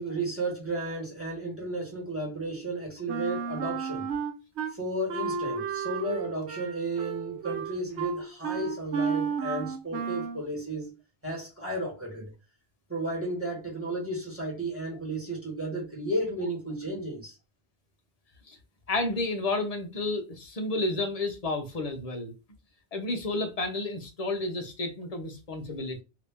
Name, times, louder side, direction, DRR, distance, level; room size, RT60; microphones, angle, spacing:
voice 1, 0.0-4.1 4.7-10.9 11.2-12.3 12.9-17.4, right 1 dB, 10° right, 1.4 m, -33 dB
Wind instrument woodwind instrument, 3.1-4.7 5.1-10.4, right 6 dB, 75° right, 0.9 m, -32 dB
voice 2, 18.9-22.3 22.9-26.0, left 2 dB, 40° left, 0.8 m, -31 dB
2.9 x 2.7 x 3.5 m
omnidirectional pair, 1.2 m